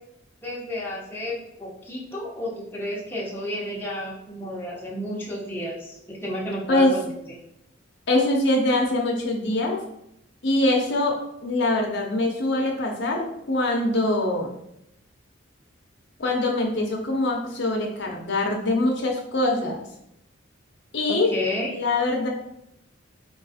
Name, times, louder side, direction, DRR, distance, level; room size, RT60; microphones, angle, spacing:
voice 1, 0.4-7.1 21.1-21.7, left 1 dB, 10° left, -5 dB, 0.9 m, -31 dB
voice 2, 8.1-9.8 10.4-11.1 11.4-14.6 16.2-19.8 20.9-21.3 21.7-22.3, left 2 dB, 60° left, 1 dB, 0.7 m, -23 dB
4.6 x 2.4 x 4.1 m, 0.80 s
head